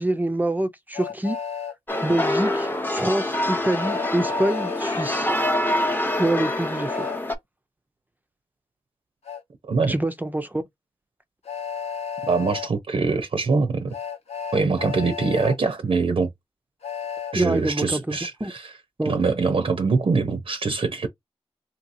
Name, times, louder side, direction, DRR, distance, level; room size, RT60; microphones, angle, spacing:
voice 1, 0.0-1.4 2.0-5.3 6.2-7.1 9.9-10.6 17.3-18.5 19.0-19.1, right 1 dB, 15° right, 0.5 m, -25 dB
Train, 0.9-1.7 3.8-4.8 6.9-7.2 9.3-9.4 11.5-12.7 13.9-15.6 16.8-17.3, left 7 dB, 90° left, 0.8 m, -33 dB
sound 1, 1.9-7.4, left 1 dB, 20° left, 0.8 m, -25 dB
voice 2, 12.2-13.9 14.5-16.3 17.3-18.7 19.0-21.1, right 4 dB, 60° right, 0.6 m, -23 dB
2.8 x 2.8 x 2.6 m
cardioid pair, 45°, 11 cm